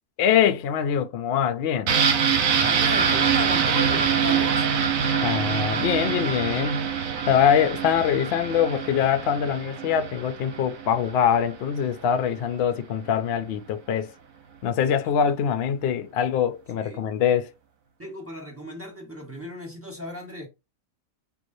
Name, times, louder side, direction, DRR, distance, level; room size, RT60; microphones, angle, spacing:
voice 1, 0.2-1.9 5.2-6.9 7.3-14.1 14.6-17.5, left 8 dB, 65° left, 0.6 m, -23 dB
sound 1, 1.9-11.5 11.8-11.9, right 7 dB, 85° right, 1.2 m, -24 dB
voice 2, 2.6-4.7 15.0-15.3 16.8-17.0 18.0-20.5, left 1 dB, 10° right, 1.0 m, -35 dB
5.4 x 3.1 x 2.6 m
omnidirectional pair, 1.4 m